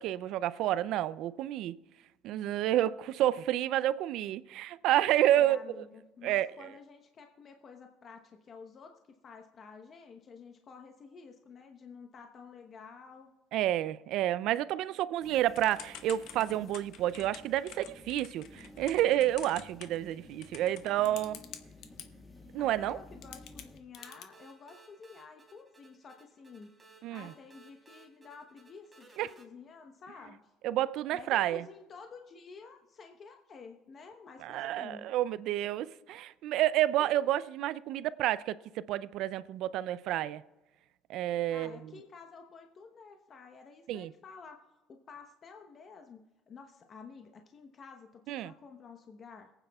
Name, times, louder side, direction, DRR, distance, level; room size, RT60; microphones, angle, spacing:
voice 1, 0.0-1.8 2.2-5.6 6.2-6.7 13.5-21.4 22.5-23.0 27.0-27.3 29.2-29.3 30.6-31.6 34.4-40.4 41.1-41.8 43.9-44.1 48.3-48.5, right 13 dB, 70° right, 0.4 m, -30 dB
voice 2, 5.3-13.3 20.9-21.4 22.6-26.7 27.1-30.5 31.1-35.1 37.0-37.4 41.5-49.5, left 5 dB, 45° left, 0.9 m, -51 dB
sound 1, 15.2-23.8, left 2 dB, 5° left, 1.5 m, -53 dB
Typing / Telephone, 15.5-22.1 22.9-23.0 23.2-24.2, left 10 dB, 70° left, 0.8 m, -48 dB
sound 2, 24.0-29.4, right 3 dB, 20° right, 3.2 m, -59 dB
22.5 x 8.9 x 2.3 m
supercardioid pair, 85°, 0 cm